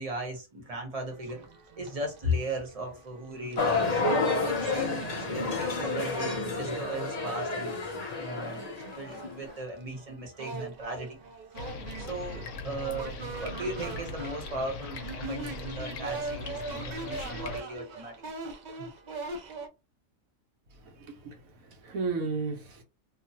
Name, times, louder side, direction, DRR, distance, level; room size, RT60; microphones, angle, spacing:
voice 1, 0.0-7.8 8.2-8.6 9.0-11.6 12.0-18.4 18.8-18.9, equal, 30° right, 0.8 m, -37 dB
sound 1, 1.1-5.0 5.6-5.7 6.0-19.7, right 3 dB, 55° right, 0.5 m, -43 dB
sound 2, 3.6-9.5, left 3 dB, 45° left, 0.6 m, -30 dB
sound 3, 11.5-17.6, left 3 dB, 65° left, 1.0 m, -40 dB
voice 2, 20.8-22.8, right 4 dB, 85° right, 1.2 m, -34 dB
2.9 x 2.3 x 2.8 m
omnidirectional pair, 1.5 m